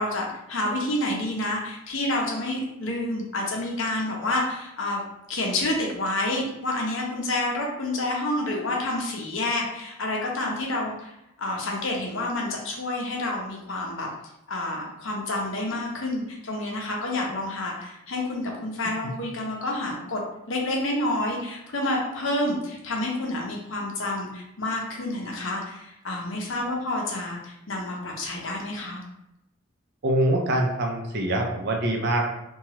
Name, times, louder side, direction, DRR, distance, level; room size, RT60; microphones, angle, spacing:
voice 1, 0.0-5.0 5.3-11.1 11.4-14.1 14.5-20.2 20.5-29.0, left 1 dB, 60° left, -1 dB, 0.6 m, -29 dB
voice 2, 30.0-32.3, right 1 dB, 50° right, 2 dB, 0.5 m, -24 dB
2.9 x 2.3 x 2.8 m, 0.88 s
head